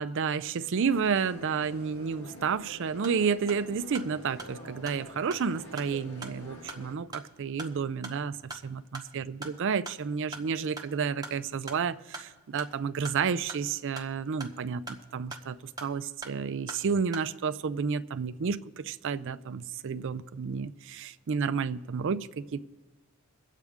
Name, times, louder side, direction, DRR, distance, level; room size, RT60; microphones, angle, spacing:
voice 1, 0.0-8.4 9.2-22.6, right 6 dB, 55° right, 13 dB, 0.4 m, -31 dB
sound 1, 0.8-6.9, equal, 65° left, 2.0 m, -47 dB
sound 2, 3.0-17.3, right 2 dB, 15° right, 1.1 m, -46 dB
23.5 x 8.3 x 3.6 m, 1.2 s
head